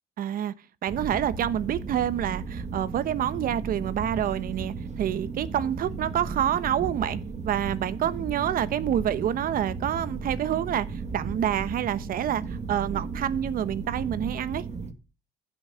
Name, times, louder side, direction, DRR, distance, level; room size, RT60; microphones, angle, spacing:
voice 1, 0.2-0.5 0.8-7.2 7.4-14.6, right 10 dB, 55° right, 1.1 m, -27 dB
sound 1, 0.9-14.9, right 4 dB, 40° right, 1.9 m, -35 dB
16.0 x 6.3 x 5.7 m
cardioid pair, 110°, 17 cm